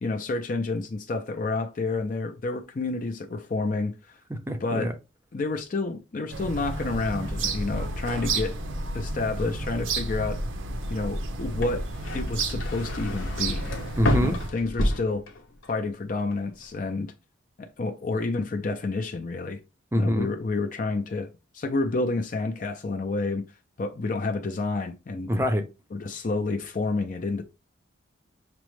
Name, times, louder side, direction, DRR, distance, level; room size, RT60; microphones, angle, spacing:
voice 1, 0.0-4.2 4.6-4.9 5.3-8.6 8.9-10.4 10.9-11.9 12.1-13.7 14.1-15.2 15.7-17.1 17.6-19.6 20.0-21.3 21.5-23.4 23.8-25.3 25.9-27.4, left 3 dB, 40° left, 0.4 m, -29 dB
voice 2, 4.3-4.9 14.0-14.3 19.9-20.3 25.3-25.6, equal, 10° right, 0.5 m, -25 dB
sound 1, 6.3-14.5, right 2 dB, 75° right, 0.6 m, -31 dB
sound 2, 11.5-15.8 16.1-16.7, left 1 dB, 75° left, 0.7 m, -30 dB
5.9 x 2.1 x 3.1 m
head